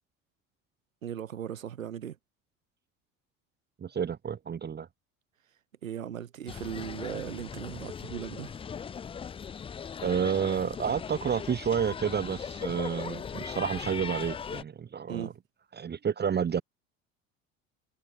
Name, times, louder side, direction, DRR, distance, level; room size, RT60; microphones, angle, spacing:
voice 1, 1.0-2.2 5.8-8.6 15.1-15.3, right 9 dB, 85° right, 3.3 m, -38 dB
voice 2, 3.8-4.9 10.0-15.3 15.7-16.6, right 7 dB, 25° right, 1.2 m, -30 dB
sound 1, 6.5-14.6, left 7 dB, 15° left, 0.4 m, -39 dB
hypercardioid pair, 70°, 39 cm